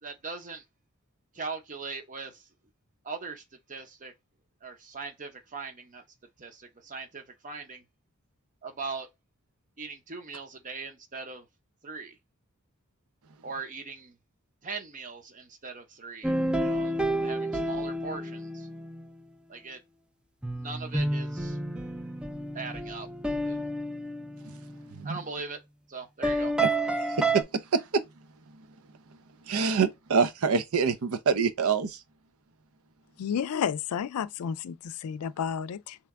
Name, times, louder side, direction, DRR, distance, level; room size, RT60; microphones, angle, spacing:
voice 1, 0.0-0.6 1.3-2.4 3.0-3.4 3.7-4.1 4.6-6.0 6.4-7.8 8.6-9.1 9.8-11.5 11.8-12.1 13.4-14.2 14.6-17.0 17.2-18.7 19.5-19.8 20.5-21.6 22.5-23.1 23.4-23.6 25.0-25.6 25.9-26.5, right 4 dB, 35° right, 0.7 m, -40 dB
sound 1, 16.2-19.1 20.4-25.0 26.2-27.4, right 1 dB, 5° right, 0.3 m, -30 dB
voice 2, 27.1-28.0 29.5-32.0, right 5 dB, 75° right, 0.6 m, -26 dB
voice 3, 33.2-36.0, left 7 dB, 90° left, 0.4 m, -31 dB
3.4 x 2.9 x 3.5 m
head